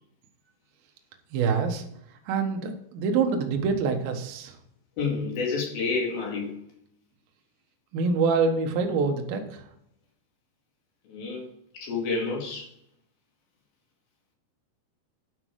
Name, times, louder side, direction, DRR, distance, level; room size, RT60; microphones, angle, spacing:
voice 1, 1.3-1.8 2.3-4.6 7.9-9.6, right 5 dB, 70° right, 4 dB, 2.4 m, -25 dB
voice 2, 5.0-6.6 11.1-11.5 11.7-12.7, left 4 dB, 55° left, 0 dB, 3.4 m, -29 dB
11.5 x 6.1 x 4.8 m, 0.72 s
omnidirectional pair, 6.0 m